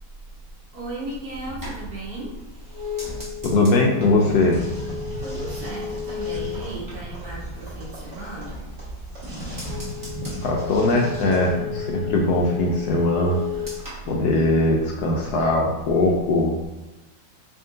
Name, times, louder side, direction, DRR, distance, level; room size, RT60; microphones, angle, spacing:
voice 1, 0.7-2.3 5.2-8.7, right 2 dB, 60° right, -5 dB, 1.5 m, -35 dB
sound 1, 1.3-7.9 8.3-9.0 9.3-15.0 15.2-15.7, left 6 dB, 20° right, 0.5 m, -34 dB
voice 2, 3.4-4.6 10.2-13.4 14.1-16.5, left 2 dB, 70° left, -1 dB, 1.0 m, -20 dB
sound 2, 4.2-11.5, equal, 40° right, 1.5 m, -36 dB
3.5 x 2.8 x 3.7 m, 1.0 s
omnidirectional pair, 2.0 m